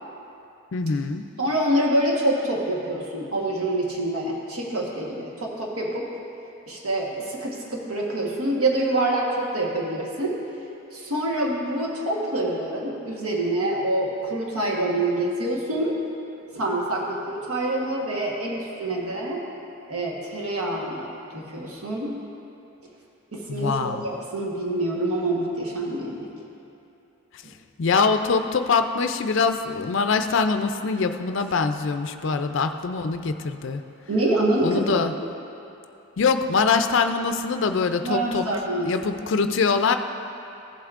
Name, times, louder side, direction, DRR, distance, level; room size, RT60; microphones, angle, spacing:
voice 1, 0.7-1.2 23.5-24.0 27.8-33.8 34.6-35.1 36.2-38.5 38.8-40.0, left 4 dB, 60° left, 8 dB, 0.4 m, -23 dB
voice 2, 1.4-6.1 6.7-10.4 10.9-16.0 16.5-19.5 19.9-22.2 23.3-26.3 34.1-34.8 38.0-38.9, right 1 dB, 85° right, -3 dB, 1.3 m, -26 dB
15.0 x 7.9 x 2.5 m, 2.9 s
head